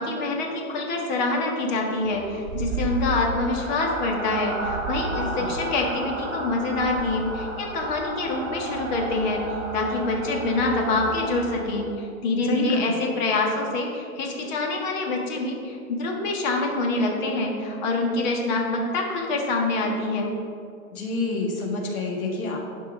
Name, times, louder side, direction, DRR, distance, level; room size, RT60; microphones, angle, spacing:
voice 1, 0.0-9.4 9.7-20.3, left 2 dB, 30° left, 1 dB, 1.4 m, -26 dB
sound 1, 2.0-12.0, right 2 dB, 25° right, 1.1 m, -32 dB
voice 2, 5.1-5.6 12.4-13.0 20.9-22.6, left 3 dB, 75° left, -1 dB, 1.9 m, -28 dB
11.0 x 4.6 x 6.1 m, 2.5 s
hypercardioid pair, 160°, 43 cm